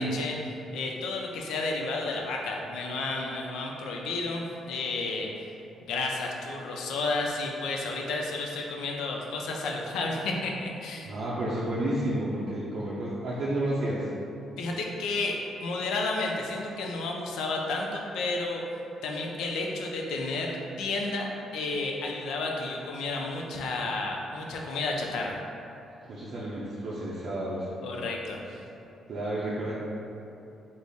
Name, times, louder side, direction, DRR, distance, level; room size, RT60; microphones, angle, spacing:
voice 1, 0.0-5.4 5.9-11.1 14.6-18.6 19.0-25.4 27.8-28.4, left 3 dB, 85° left, 0 dB, 0.4 m, -32 dB
voice 2, 11.0-14.1 26.1-27.7 29.1-29.8, right 1 dB, 60° right, -8 dB, 0.5 m, -31 dB
3.9 x 2.0 x 3.4 m, 2.8 s
cardioid pair, 90°, 0 cm